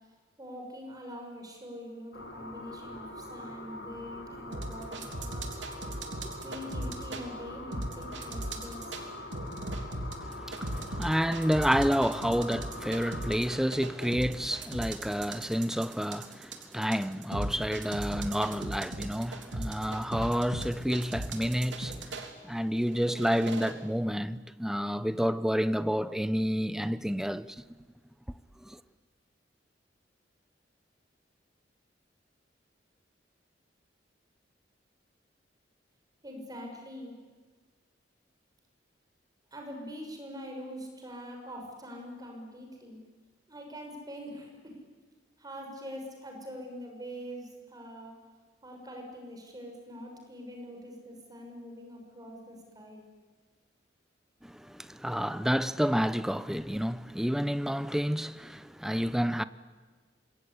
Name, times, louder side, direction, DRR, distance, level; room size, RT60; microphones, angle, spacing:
voice 1, 0.4-5.5 6.4-9.0 36.2-37.2 39.5-43.0 43.5-44.8 45.4-48.1 48.6-53.1, equal, 20° right, 6.3 m, -44 dB
sound 1, 2.1-13.4, left 1 dB, 75° left, 5.0 m, -43 dB
sound 2, 4.5-7.2 7.7-9.0 9.3-22.3 22.9-23.7, right 1 dB, 85° right, 3.4 m, -37 dB
voice 2, 10.2-27.6 28.6-28.8 54.4-59.4, equal, 5° right, 0.8 m, -30 dB
26.0 x 22.5 x 9.9 m
head